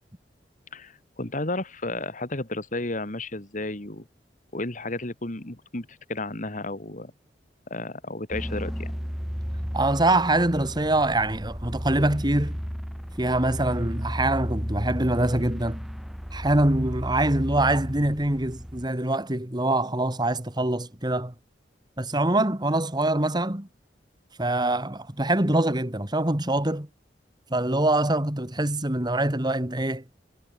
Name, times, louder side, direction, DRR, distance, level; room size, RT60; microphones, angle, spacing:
voice 1, 0.7-4.0 4.5-7.1 7.7-8.9, left 2 dB, 45° left, 2.6 m, -33 dB
sound 1, 8.3-18.9, equal, ahead, 0.9 m, -33 dB
voice 2, 9.7-12.6 13.2-15.8 16.3-21.3 22.0-23.7 24.4-26.9 27.5-30.0, right 1 dB, 25° right, 2.3 m, -24 dB
head